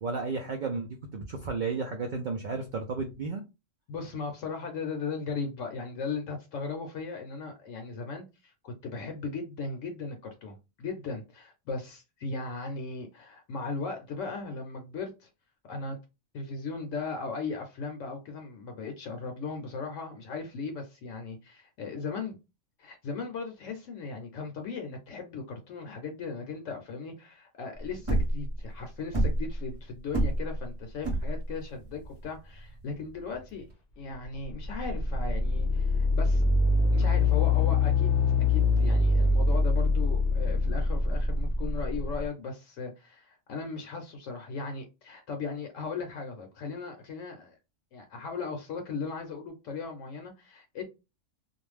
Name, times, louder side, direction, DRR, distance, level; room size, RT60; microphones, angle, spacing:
voice 1, 0.0-3.4, right 4 dB, 80° right, 0.4 m, -33 dB
voice 2, 3.9-15.3 15.7-16.0 16.3-22.4 22.8-33.7 34.0-36.4 36.9-38.2 38.5-47.5 47.9-50.8, left 4 dB, 70° left, 0.9 m, -37 dB
sound 1, 27.8-33.7, right 1 dB, 25° right, 0.9 m, -29 dB
sound 2, 34.2-42.2, left 3 dB, 45° left, 0.6 m, -24 dB
2.4 x 2.2 x 3.2 m
omnidirectional pair, 1.4 m